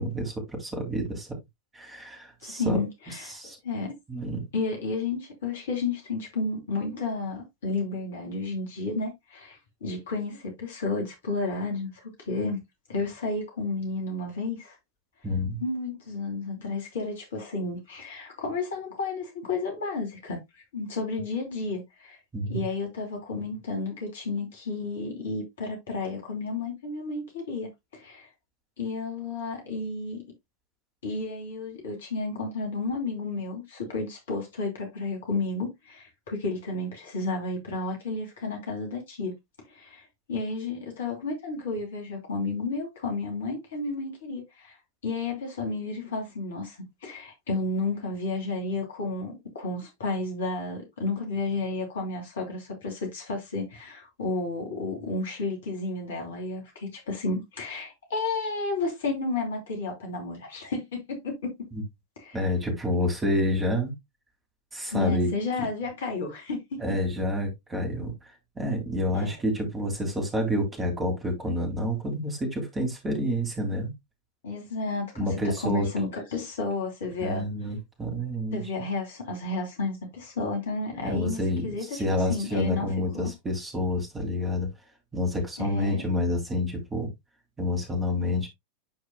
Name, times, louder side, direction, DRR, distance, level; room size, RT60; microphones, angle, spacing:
voice 1, 0.0-1.4 1.7-2.8 3.2-3.6 4.1-4.4 15.2-15.6 22.3-22.7 61.7-61.8 62.3-63.9 64.7-65.3 66.8-73.9 75.2-75.9 77.2-78.6 81.0-84.7 85.1-87.1 87.6-88.5, left 1 dB, 15° right, 3.2 m, -28 dB
voice 2, 2.4-4.0 4.5-12.6 12.9-14.7 15.6-20.4 20.7-22.2 22.5-28.3 28.8-30.2 31.0-39.3 39.7-44.8 45.0-61.5 62.2-62.4 64.9-66.6 69.1-69.3 74.4-77.4 78.5-82.9 83.1-83.3 85.6-86.0, left 3 dB, 60° left, 3.0 m, -32 dB
11.5 x 4.8 x 2.2 m
figure-of-eight pair, 90°, 0 cm